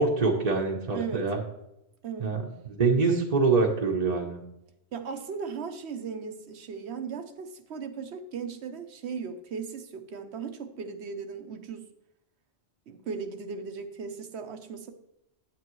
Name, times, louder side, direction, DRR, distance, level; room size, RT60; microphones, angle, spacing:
voice 1, 0.0-1.4 2.2-4.4, right 4 dB, 35° right, 0 dB, 0.9 m, -25 dB
voice 2, 0.9-1.2 2.0-2.3 4.9-11.8 12.9-14.9, right 5 dB, 70° right, 8 dB, 1.0 m, -37 dB
9.0 x 8.9 x 3.1 m, 0.86 s
omnidirectional pair, 1.2 m